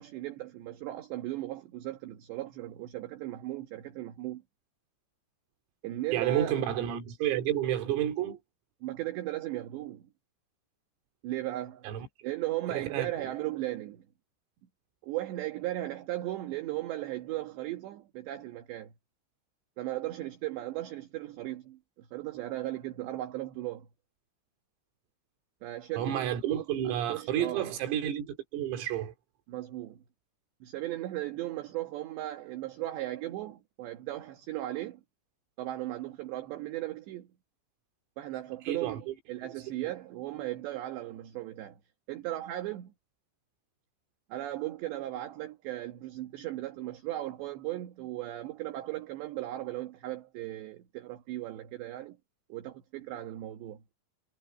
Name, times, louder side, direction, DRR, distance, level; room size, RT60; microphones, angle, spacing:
voice 1, 0.0-4.4 5.8-6.7 8.8-10.0 11.2-11.9 12.2-14.0 15.0-18.9 19.8-23.9 25.6-27.8 29.5-30.0 30.6-35.0 35.6-37.3 38.2-41.8 42.1-42.9 44.3-52.2 52.5-53.8, right 15 dB, 65° right, 3.5 m, -37 dB
voice 2, 6.1-8.4 11.8-12.1 12.7-13.3 26.0-29.1 38.7-39.1, right 11 dB, 85° right, 5.5 m, -30 dB
omnidirectional pair, 5.9 m